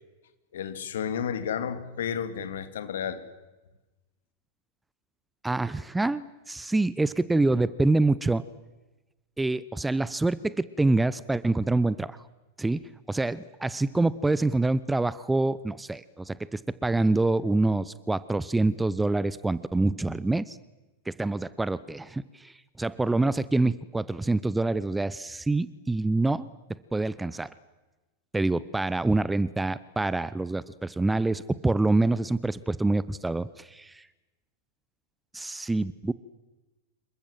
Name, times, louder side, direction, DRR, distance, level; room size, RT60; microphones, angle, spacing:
voice 1, 0.5-3.2, left 8 dB, 60° left, 10 dB, 2.5 m, -32 dB
voice 2, 5.4-8.4 9.4-12.2 12.6-20.6 21.1-26.5 26.9-27.5 28.3-34.1 35.3-36.1, right 2 dB, 5° right, 18 dB, 0.8 m, -26 dB
27.5 x 22.5 x 7.6 m, 1.1 s
figure-of-eight pair, 90°, 0 cm